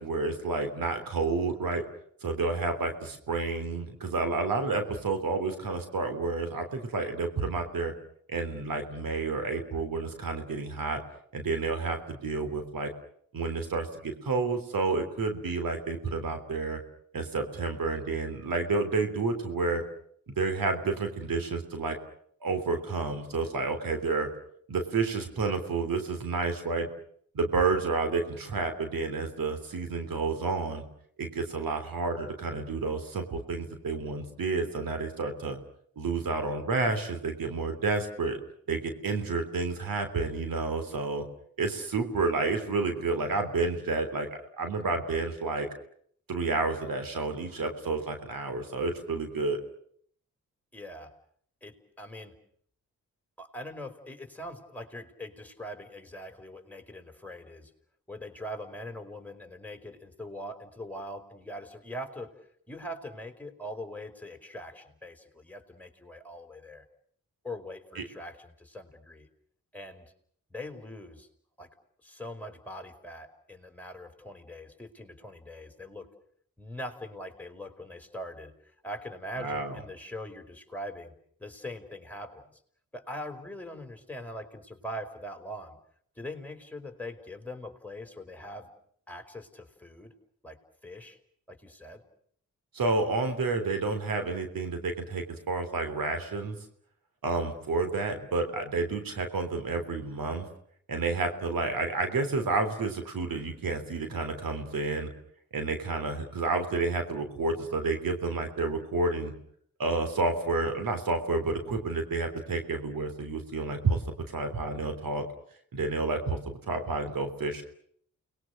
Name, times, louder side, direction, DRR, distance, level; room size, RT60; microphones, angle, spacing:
voice 1, 0.0-1.8 2.2-7.9 8.3-11.0 11.3-12.9 13.3-16.8 17.1-19.8 20.4-22.0 22.4-24.3 24.7-26.9 27.3-30.8 31.2-35.6 36.0-38.4 38.7-41.2 41.6-45.7 46.3-49.6 68.0-68.1 79.4-79.8 92.7-96.6 97.2-100.5 100.9-105.1 105.5-109.3 109.8-114.0 114.3-115.2 115.7-117.6, right 3 dB, 75° right, 7 dB, 3.5 m, -30 dB
voice 2, 50.7-51.1 51.6-52.4 53.4-57.7 58.1-62.4 62.7-66.8 67.4-69.3 69.7-70.0 70.5-71.3 71.6-71.7 72.0-76.1 76.6-78.6 78.8-82.6 82.9-85.8 86.2-88.7 89.1-90.1 90.4-91.2 91.5-92.0, equal, 5° left, 6 dB, 4.9 m, -42 dB
29.5 x 21.0 x 6.6 m, 0.63 s
cardioid pair, 50°, 34 cm